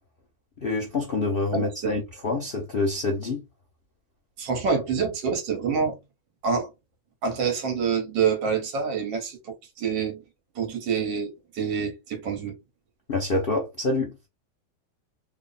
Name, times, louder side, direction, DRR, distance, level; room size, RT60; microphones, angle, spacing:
voice 1, 0.6-3.4 13.1-14.1, left 3 dB, 75° left, 0.5 m, -26 dB
voice 2, 1.5-2.0 4.4-6.0 6.4-6.7 7.2-10.2 10.5-12.5, right 6 dB, 65° right, 1.7 m, -27 dB
3.6 x 2.1 x 3.9 m
omnidirectional pair, 2.2 m